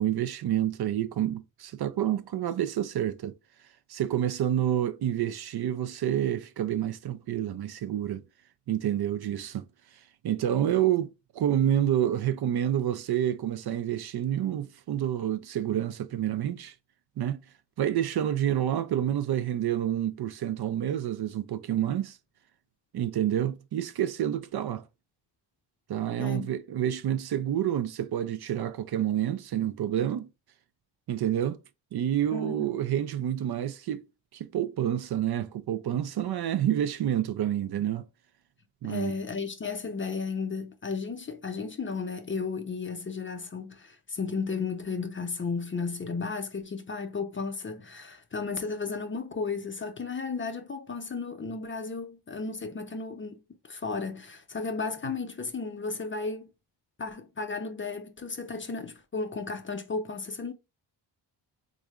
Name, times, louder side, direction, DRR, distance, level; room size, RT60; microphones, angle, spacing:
voice 1, 0.0-3.3 3.9-8.2 8.7-9.6 10.2-16.7 17.2-17.4 17.8-22.2 22.9-24.8 25.9-30.3 31.1-31.6 31.9-34.0 34.3-38.1 38.8-39.2, right 11 dB, 55° right, 0.5 m, -28 dB
voice 2, 26.2-26.5 32.3-32.8 38.8-53.4 53.6-56.5 57.0-60.5, left 4 dB, 30° left, 0.4 m, -34 dB
3.6 x 3.1 x 2.3 m
cardioid pair, 100°, 46 cm